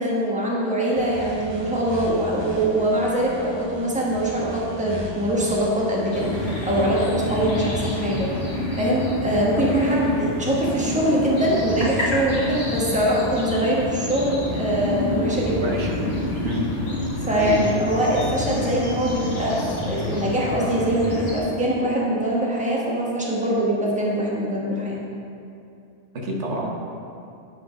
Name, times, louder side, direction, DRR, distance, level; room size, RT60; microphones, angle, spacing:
voice 1, 0.0-8.3 8.8-15.7 17.2-25.0, right 1 dB, 5° right, -5 dB, 1.2 m, -23 dB
sound 1, 1.0-7.0, left 1 dB, 30° right, 0.6 m, -38 dB
sound 2, 6.1-21.4, left 2 dB, 65° left, 1.7 m, -28 dB
voice 2, 15.6-15.9 16.4-16.6 17.4-17.6 26.1-26.7, right 1 dB, 90° right, -2 dB, 1.4 m, -27 dB
8.0 x 4.7 x 5.2 m, 2.6 s
omnidirectional pair, 1.2 m